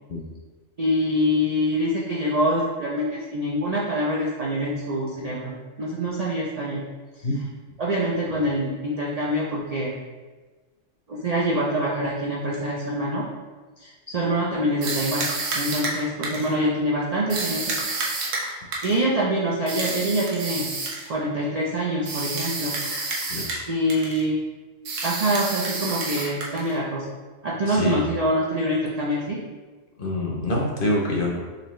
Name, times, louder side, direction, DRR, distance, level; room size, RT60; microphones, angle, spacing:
voice 1, 0.8-6.8 7.8-9.9 11.1-13.2 13.8-15.3 15.5-17.7 18.8-20.7 21.1-22.8 23.7-24.4 25.0-27.1 27.4-29.4, equal, 60° right, -4 dB, 0.4 m, -25 dB
sound 1, 14.8-16.5 17.3-19.0 19.7-21.1 22.0-23.6 23.9-24.2 24.8-26.8, right 3 dB, 80° right, 1.1 m, -29 dB
voice 2, 23.3-23.6 27.7-28.0 30.0-31.4, left 2 dB, 50° left, -2 dB, 0.8 m, -25 dB
4.0 x 3.2 x 3.1 m, 1.3 s
omnidirectional pair, 1.3 m